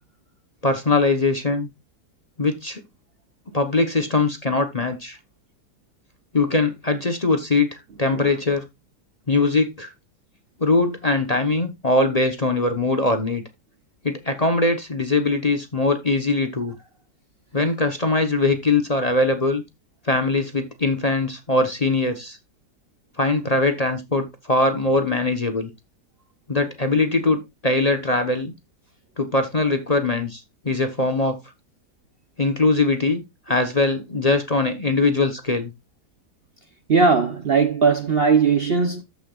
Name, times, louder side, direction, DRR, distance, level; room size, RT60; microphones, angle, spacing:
voice 1, 0.6-1.7 2.4-2.8 3.5-5.2 6.3-8.6 9.3-9.9 10.6-13.4 14.0-16.7 17.5-19.6 20.0-22.4 23.2-25.7 26.5-28.5 29.2-31.4 32.4-35.7, left 3 dB, 30° left, 1.0 m, -21 dB
voice 2, 36.9-39.0, right 5 dB, 45° right, 0.9 m, -18 dB
13.5 x 5.9 x 2.4 m
omnidirectional pair, 1.7 m